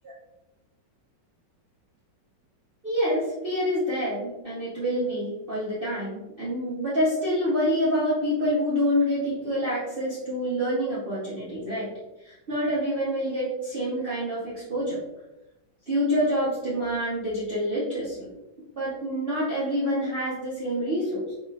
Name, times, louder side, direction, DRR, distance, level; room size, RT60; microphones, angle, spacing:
voice 1, 2.8-11.9 12.2-15.0 15.9-18.3 18.7-21.3, equal, 40° right, -10 dB, 0.9 m, -27 dB
3.9 x 3.0 x 2.4 m, 0.97 s
omnidirectional pair, 2.0 m